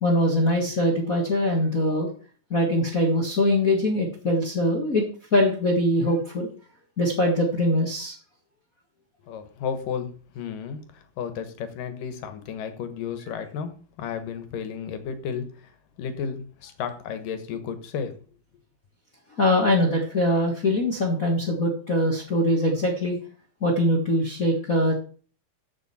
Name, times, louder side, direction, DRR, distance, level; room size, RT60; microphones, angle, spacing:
voice 1, 0.0-2.1 2.5-5.0 5.3-6.5 7.0-8.1 19.4-23.2 23.6-25.0, left 1 dB, 40° left, 1 dB, 1.4 m, -22 dB
voice 2, 9.3-13.7 14.0-15.7 16.0-18.2, left 7 dB, 80° left, 9 dB, 3.0 m, -33 dB
14.0 x 7.3 x 4.3 m, 0.40 s
omnidirectional pair, 3.8 m